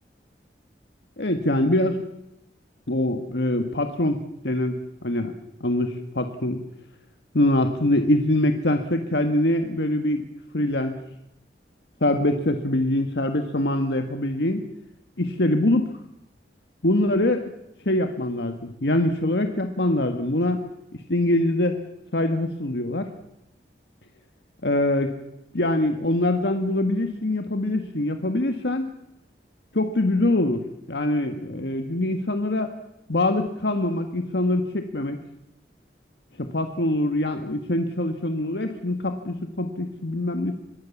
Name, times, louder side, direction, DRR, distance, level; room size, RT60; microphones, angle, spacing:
voice 1, 1.2-2.1 2.9-5.3 5.6-6.6 7.3-10.2 10.5-10.9 12.0-14.6 15.2-15.9 16.8-17.4 17.9-20.6 21.1-21.8 22.1-23.1 24.6-25.2 25.5-28.9 29.7-32.7 33.1-35.2 36.5-40.5, left 1 dB, 75° left, 6 dB, 1.6 m, -24 dB
25.5 x 21.0 x 7.2 m, 0.82 s
head